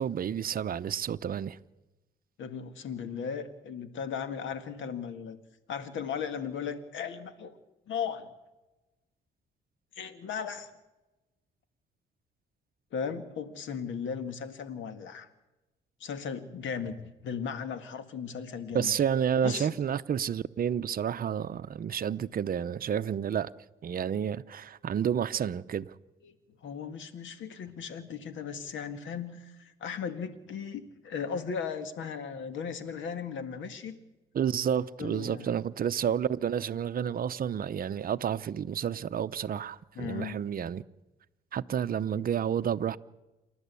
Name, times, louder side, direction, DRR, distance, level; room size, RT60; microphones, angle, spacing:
voice 1, 0.0-1.6 18.7-23.5 23.8-25.9 34.3-40.8 41.5-43.0, right 8 dB, 45° right, 0.7 m, -30 dB
voice 2, 2.4-5.4 5.7-7.6 7.9-8.3 10.0-10.7 12.9-15.3 16.0-19.0 19.4-19.8 26.2-26.3 26.6-34.0 35.0-35.5 40.0-40.4, left 6 dB, 75° left, 1.9 m, -37 dB
28.0 x 11.0 x 8.3 m
cardioid pair, 90°, 20 cm